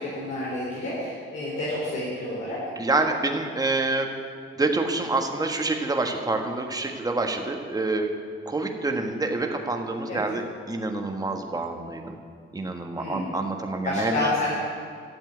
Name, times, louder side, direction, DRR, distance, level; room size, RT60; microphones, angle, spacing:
voice 1, 0.0-2.6 10.1-10.2 12.9-13.3 13.8-14.5, left 2 dB, 65° left, -8 dB, 4.4 m, -29 dB
voice 2, 2.8-4.1 4.6-8.1 8.5-12.2 12.5-14.3, right 2 dB, 15° right, 3 dB, 1.4 m, -27 dB
13.0 x 7.3 x 9.2 m, 2.3 s
cardioid pair, 120°, 21 cm